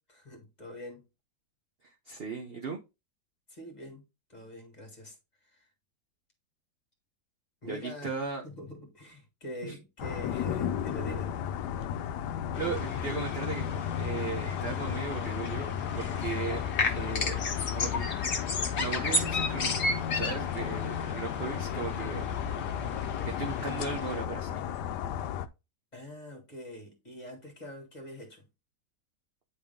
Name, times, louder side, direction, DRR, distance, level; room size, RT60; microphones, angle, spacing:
voice 1, 0.2-1.0 3.5-4.0 4.3-5.7 7.6-8.2 8.4-11.3 25.9-28.5, equal, 25° left, 1.9 m, -44 dB
voice 2, 1.8-2.8 7.6-8.5 9.6-9.8 12.6-13.6 14.0-16.6 16.9-17.4 17.7-18.1 18.8-19.9 20.1-22.3 23.2-24.6, right 5 dB, 50° right, 0.7 m, -37 dB
sound 1, 10.0-25.5, left 9 dB, 75° left, 1.1 m, -34 dB
sound 2, 12.5-24.2, left 3 dB, 45° left, 1.1 m, -35 dB
9.4 x 3.5 x 3.6 m
omnidirectional pair, 2.0 m